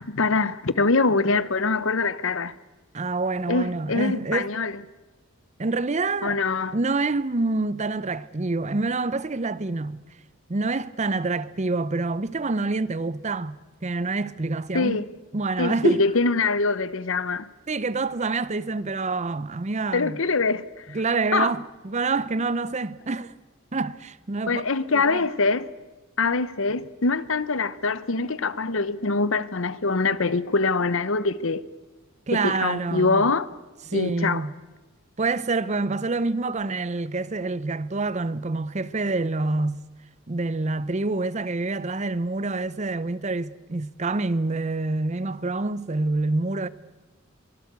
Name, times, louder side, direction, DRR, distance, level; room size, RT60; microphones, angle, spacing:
voice 1, 0.0-2.5 3.5-4.7 6.2-6.8 14.7-15.1 15.6-17.5 19.9-21.0 21.3-21.5 24.5-25.7 26.2-31.6 32.3-33.5 33.9-34.5, left 3 dB, 65° left, 0.9 m, -24 dB
voice 2, 2.9-4.5 5.6-6.4 6.7-10.0 10.5-13.6 13.8-15.0 15.3-16.0 17.7-20.2 20.9-23.3 23.7-24.6 24.9-25.2 32.3-33.3 33.9-34.5 35.2-39.8 40.3-46.7, right 3 dB, 35° right, 0.7 m, -27 dB
24.0 x 18.5 x 8.2 m
head